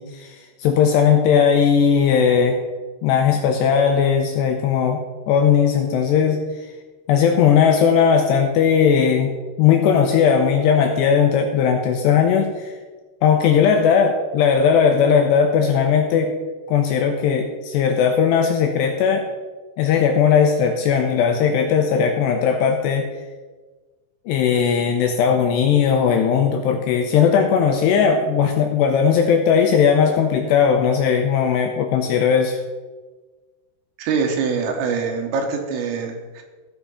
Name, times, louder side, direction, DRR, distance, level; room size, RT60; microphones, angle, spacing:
voice 1, 0.0-2.6 3.0-5.0 5.3-6.4 7.1-9.3 9.6-12.7 13.2-16.3 16.7-19.3 19.8-23.1 24.3-32.6, left 7 dB, 80° left, 4 dB, 2.5 m, -18 dB
voice 2, 34.0-36.4, right 5 dB, 90° right, 3 dB, 4.1 m, -24 dB
15.0 x 6.0 x 5.5 m, 1.3 s
omnidirectional pair, 5.7 m